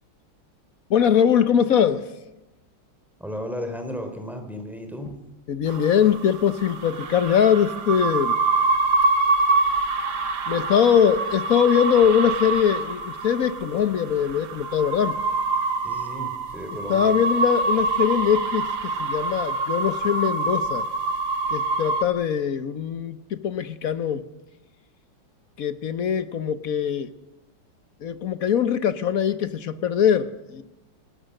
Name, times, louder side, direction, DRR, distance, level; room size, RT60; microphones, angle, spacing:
voice 1, 0.9-2.0 5.5-8.4 10.5-15.2 16.9-20.9 21.5-24.3 25.6-27.1 28.0-30.6, left 8 dB, 55° left, 12 dB, 1.1 m, -22 dB
voice 2, 3.2-5.2 15.8-17.2, equal, ahead, 5 dB, 3.6 m, -34 dB
sound 1, 5.7-22.0, right 3 dB, 70° right, 2.1 m, -25 dB
27.5 x 19.0 x 6.6 m, 1.0 s
omnidirectional pair, 2.2 m